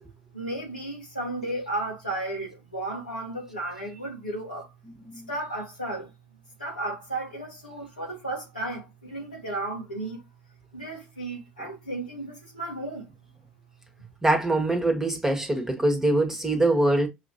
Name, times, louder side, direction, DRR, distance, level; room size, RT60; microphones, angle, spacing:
voice 1, 0.3-4.7 5.3-6.1 6.6-10.2 10.7-13.1, right 2 dB, 90° left, 2.2 m, -34 dB
voice 2, 14.2-17.1, right 2 dB, 10° right, 1.4 m, -23 dB
6.2 x 3.0 x 2.6 m
figure-of-eight pair, 60°, 5 cm